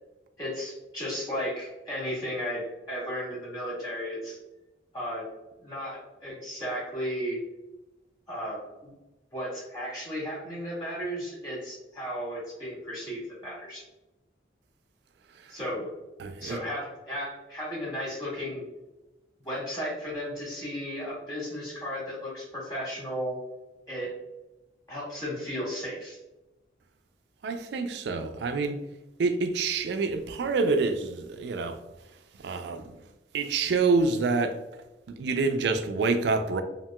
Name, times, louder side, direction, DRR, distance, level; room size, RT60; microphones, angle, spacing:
voice 1, 0.4-4.4 4.9-5.3 5.6-7.4 8.3-8.9 9.3-13.8 15.5-15.9 16.4-18.6 19.4-23.4 23.9-24.1 24.9-26.2, equal, 25° left, 1.3 m, -34 dB
voice 2, 16.2-16.6 27.4-28.8 29.2-31.8 32.4-32.9 33.3-34.6 35.1-36.6, right 4 dB, 70° right, 0.3 m, -27 dB
2.9 x 2.7 x 2.2 m
head